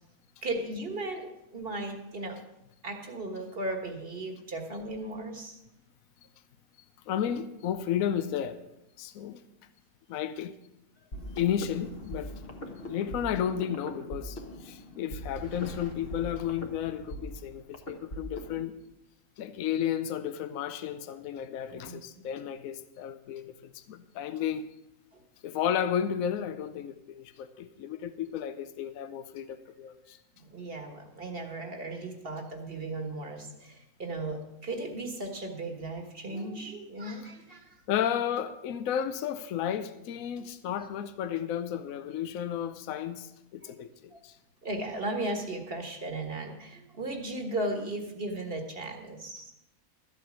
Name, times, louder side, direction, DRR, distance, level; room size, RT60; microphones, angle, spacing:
voice 1, 0.4-2.4 2.8-5.6 21.7-22.0 30.4-38.0 40.4-40.5 40.8-40.9 43.6-43.7 44.1-44.2 44.6-49.5, right 2 dB, 40° right, 1.6 m, -36 dB
voice 2, 7.1-8.6 9.0-9.4 10.1-10.5 11.3-12.3 12.7-18.7 19.4-24.7 25.4-30.2 37.9-44.4, left 9 dB, 70° left, 1.1 m, -33 dB
sound 1, 11.1-18.7, equal, 45° left, 1.3 m, -41 dB
13.0 x 8.3 x 6.0 m
omnidirectional pair, 1.5 m